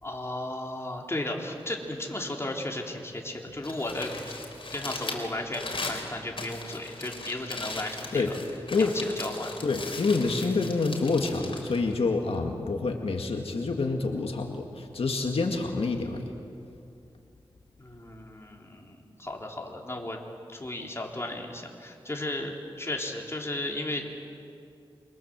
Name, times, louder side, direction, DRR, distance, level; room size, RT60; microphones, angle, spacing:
voice 1, 0.0-4.1 4.7-8.3 8.8-9.5 17.8-20.2 20.5-24.0, left 1 dB, 25° left, 0 dB, 3.7 m, -35 dB
Crumpling crinkling, 3.5-12.6, left 3 dB, 65° left, 4.2 m, -39 dB
voice 2, 9.6-16.3, left 3 dB, 85° left, 3 dB, 2.0 m, -27 dB
27.5 x 24.0 x 7.6 m, 2.6 s
wide cardioid pair, 75°, 10 cm